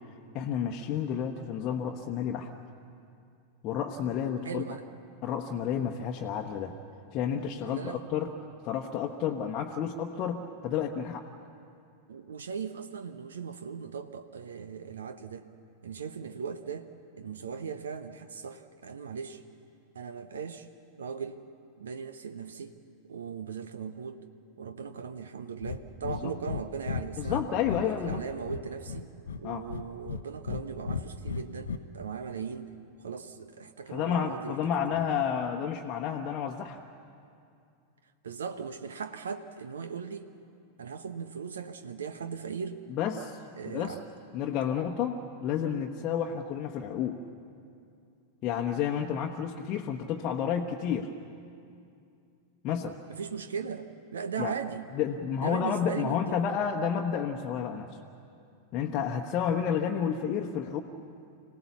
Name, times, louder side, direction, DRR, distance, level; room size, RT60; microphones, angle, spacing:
voice 1, 0.3-2.5 3.6-4.6 5.2-6.7 7.1-8.3 8.6-11.2 26.1-26.3 27.2-28.2 29.4-29.6 33.9-36.8 42.9-43.4 43.7-44.0 44.3-47.2 48.4-51.1 52.6-53.0 54.4-54.5 54.9-57.9 58.7-60.8, left 8 dB, 35° left, 2 dB, 1.1 m, -30 dB
voice 2, 4.4-4.8 7.6-8.1 12.1-15.5 15.8-16.9 17.2-19.4 19.9-20.7 21.0-21.4 21.8-22.8 23.0-24.2 24.6-27.4 27.7-29.1 29.4-32.7 33.0-35.1 38.2-40.3 40.8-42.8 43.5-44.0 53.1-54.8 55.4-56.4, right 6 dB, 65° right, 10 dB, 0.9 m, -38 dB
Breathing, 25.6-25.8 26.0-26.2 26.5-26.6 26.9-28.2 28.5-29.4 29.7-30.6 30.9-31.8, left 5 dB, 70° left, 0.9 m, -34 dB
26.0 x 17.0 x 7.1 m, 2.5 s
figure-of-eight pair, 90°, 0 cm